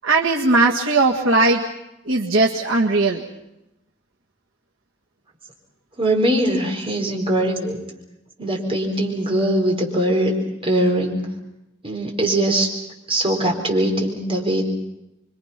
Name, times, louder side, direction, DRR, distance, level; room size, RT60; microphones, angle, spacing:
voice 1, 0.0-1.6 2.1-3.2, right 3 dB, 90° right, -1 dB, 1.9 m, -18 dB
voice 2, 6.0-7.8 8.4-10.3 10.6-11.2 11.8-12.7 13.1-14.7, right 1 dB, 30° right, 0 dB, 4.7 m, -21 dB
27.5 x 24.0 x 6.0 m, 0.91 s
head